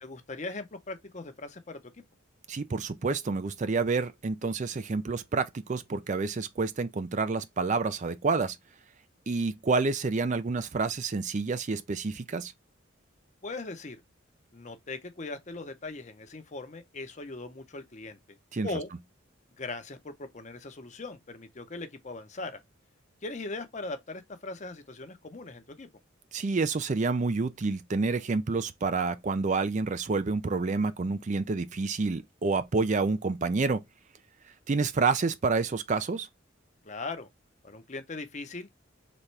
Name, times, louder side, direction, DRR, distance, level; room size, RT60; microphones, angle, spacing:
voice 1, 0.0-1.8 13.4-14.0 14.5-18.4 18.6-18.9 19.6-22.6 23.2-25.9 36.8-37.3 37.6-38.7, left 3 dB, 35° left, 0.7 m, -39 dB
voice 2, 2.5-8.6 9.3-12.5 18.5-18.7 26.3-33.8 34.7-36.3, right 4 dB, 35° right, 0.4 m, -28 dB
4.2 x 3.5 x 3.2 m
head